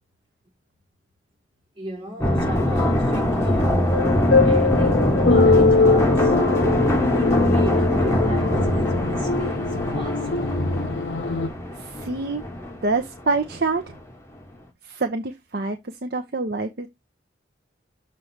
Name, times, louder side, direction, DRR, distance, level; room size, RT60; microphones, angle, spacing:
voice 1, 1.8-6.4 6.9-10.6, equal, 30° right, 3.9 m, -35 dB
sound 1, 2.2-13.6 14.0-14.1, left 1 dB, 15° left, 1.4 m, -22 dB
sound 2, 3.6-11.5, left 4 dB, 65° left, 0.6 m, -22 dB
voice 2, 11.8-12.4 12.8-14.0 14.8-16.9, right 3 dB, 55° right, 0.8 m, -26 dB
6.8 x 3.1 x 5.8 m
head